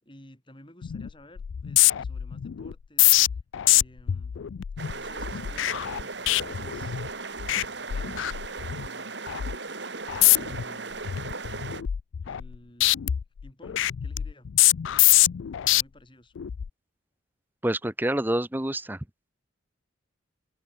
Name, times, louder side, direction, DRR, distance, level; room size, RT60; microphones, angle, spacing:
voice 1, 0.0-3.2 3.6-4.4 4.9-7.0 7.5-9.1 10.4-11.1 12.2-13.0 13.4-14.5 15.6-16.3, left 1 dB, 25° left, 6.3 m, -52 dB
sound 1, 0.8-1.1 1.4-7.1 7.4-7.6 7.9-8.9 9.3-9.5 10.1-10.6 11.0-12.5 12.8-15.8 16.4-16.7, left 16 dB, 75° left, 0.4 m, -24 dB
sound 2, 4.8-11.8, right 3 dB, 60° right, 2.6 m, -37 dB
voice 2, 17.6-19.0, right 1 dB, 10° right, 0.8 m, -27 dB
open air
head